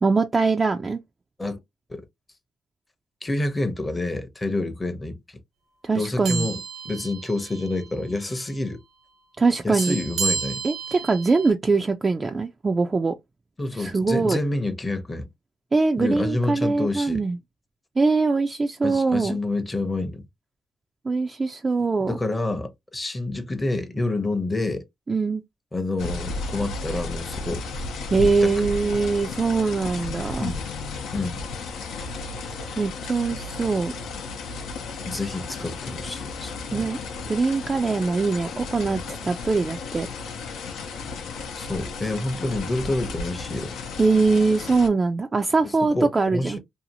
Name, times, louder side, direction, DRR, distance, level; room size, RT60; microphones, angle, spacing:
voice 1, 0.0-1.0 5.8-6.5 9.4-10.0 10.6-13.2 13.7-14.4 15.7-17.4 18.0-19.4 21.0-22.2 25.1-25.4 28.1-30.5 32.8-33.9 36.7-37.0 37.3-40.1 44.0-46.6, right 4 dB, 30° right, 0.3 m, -22 dB
voice 2, 3.2-5.4 6.0-8.8 9.6-10.6 13.6-15.3 16.0-17.2 18.8-20.2 22.0-24.9 25.7-27.6 28.2-28.6 30.4-30.7 31.1-31.4 32.7-32.8 35.0-36.9 38.9-39.0 41.5-43.8 45.6-46.6, left 2 dB, 20° left, 0.7 m, -28 dB
sound 1, 6.2-7.9 8.2-8.4 9.8-11.5, right 5 dB, 80° right, 0.7 m, -31 dB
sound 2, 26.0-44.9, left 4 dB, 85° left, 0.6 m, -34 dB
2.7 x 2.4 x 2.7 m
cardioid pair, 90°, 0 cm